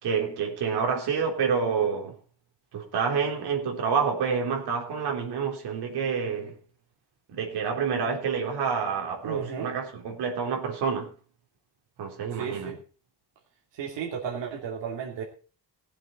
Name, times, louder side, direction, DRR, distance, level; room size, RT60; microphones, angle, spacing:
voice 1, 0.0-2.1 2.7-6.5 7.3-11.1 12.0-12.7, right 6 dB, 65° right, 3.7 m, -28 dB
voice 2, 9.2-9.7 12.3-12.8 13.7-15.2, right 7 dB, 85° right, 2.8 m, -34 dB
18.5 x 7.8 x 4.2 m
cardioid pair, 175°, 42 cm